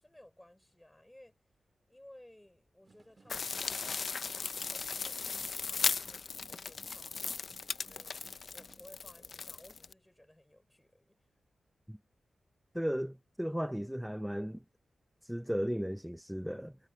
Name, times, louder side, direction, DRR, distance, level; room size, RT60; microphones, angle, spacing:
voice 1, 0.0-1.4 1.9-8.1 8.5-11.2, left 1 dB, 15° left, 6.1 m, -59 dB
sound 1, 2.8-9.0, right 4 dB, 45° right, 1.9 m, -63 dB
sound 2, 3.3-9.9, left 5 dB, 60° left, 0.5 m, -37 dB
voice 2, 12.7-14.6 15.2-16.8, equal, 5° right, 0.8 m, -35 dB
cardioid pair, 55°, 0 cm